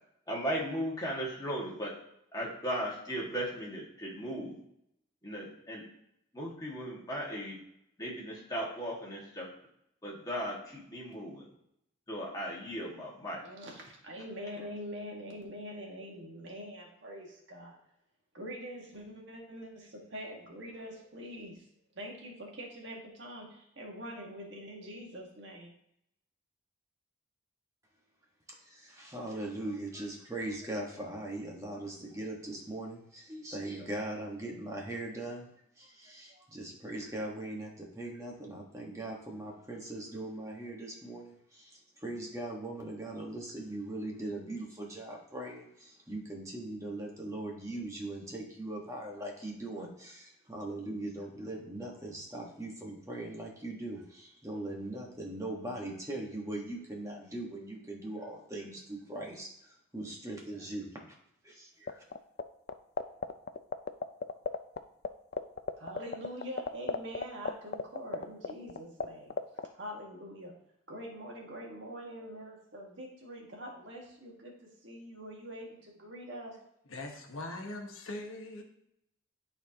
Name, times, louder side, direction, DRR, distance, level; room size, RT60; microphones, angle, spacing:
voice 1, 0.3-1.9 2.3-4.6 5.2-5.8 6.3-7.6 8.0-9.5 10.0-11.5 12.1-13.4, equal, 20° left, -4 dB, 1.8 m, -37 dB
voice 2, 13.4-17.8 18.3-21.6 21.9-25.7 65.8-69.4 69.7-70.5 70.9-76.6, equal, 65° right, 0 dB, 1.6 m, -44 dB
voice 3, 28.5-35.5 35.8-60.9 61.4-62.0, right 1 dB, 15° right, -1 dB, 1.4 m, -40 dB
sound 1, 61.9-62.4 62.7-64.8 65.0-65.1 65.3-69.0 69.3-69.6, left 5 dB, 50° left, 0.4 m, -31 dB
voice 4, 76.9-78.6, left 2 dB, 90° left, 2 dB, 1.2 m, -41 dB
12.0 x 4.3 x 2.9 m, 0.76 s
head